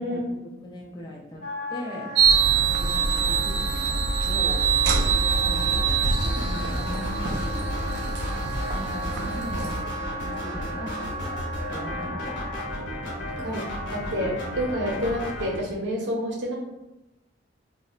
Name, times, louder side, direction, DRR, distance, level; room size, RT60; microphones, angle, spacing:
voice 1, 0.0-2.1 2.6-4.7 5.4-7.7 8.7-11.4 11.7-12.5, equal, 25° left, -2 dB, 0.4 m, -39 dB
Wind instrument woodwind instrument, 1.4-12.7, right 1 dB, 40° left, 0.8 m, -36 dB
sound 1, 2.1-9.8, right 5 dB, 60° right, 0.3 m, -24 dB
sound 2, 4.8-15.6, left 1 dB, 75° left, 0.8 m, -34 dB
voice 2, 13.9-16.6, equal, 75° right, -1 dB, 0.7 m, -28 dB
2.2 x 2.0 x 3.8 m, 0.98 s
head